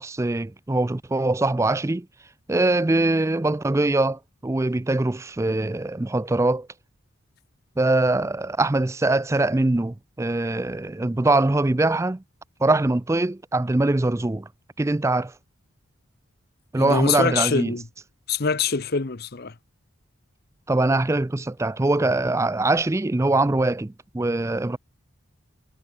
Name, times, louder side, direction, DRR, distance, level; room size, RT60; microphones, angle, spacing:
voice 1, 0.0-2.1 2.5-6.7 7.8-12.2 12.6-14.5 14.8-15.3 16.7-17.7 20.7-24.8, right 2 dB, 15° right, 0.4 m, -22 dB
voice 2, 16.8-17.9 18.3-19.5, left 5 dB, 45° left, 0.8 m, -24 dB
head